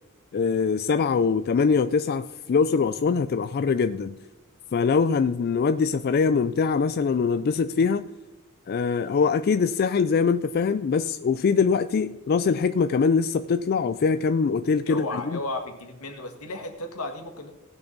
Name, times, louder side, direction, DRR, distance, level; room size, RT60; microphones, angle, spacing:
voice 1, 0.3-4.2 4.7-8.1 8.7-15.4, left 5 dB, 45° left, 12 dB, 0.3 m, -23 dB
voice 2, 14.8-17.5, left 2 dB, 75° left, 4 dB, 1.8 m, -34 dB
17.0 x 6.9 x 4.0 m, 1.1 s
head